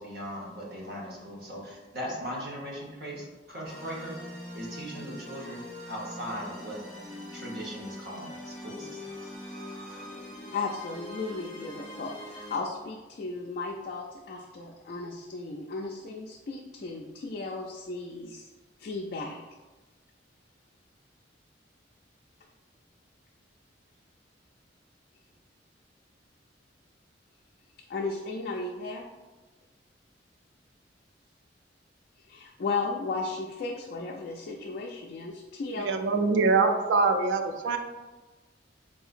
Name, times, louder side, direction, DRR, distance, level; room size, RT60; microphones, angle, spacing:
voice 1, 0.0-4.2 4.5-6.8 7.3-10.1, equal, 60° right, -3 dB, 0.9 m, -39 dB
sound 1, 3.6-12.6, left 1 dB, 5° left, 0.9 m, -43 dB
voice 2, 10.5-18.5 18.8-19.4 27.9-29.0 32.3-35.9, left 3 dB, 55° left, -2 dB, 0.3 m, -35 dB
voice 3, 35.8-37.8, right 4 dB, 85° right, 6 dB, 0.4 m, -24 dB
3.7 x 2.8 x 2.5 m, 1.2 s
head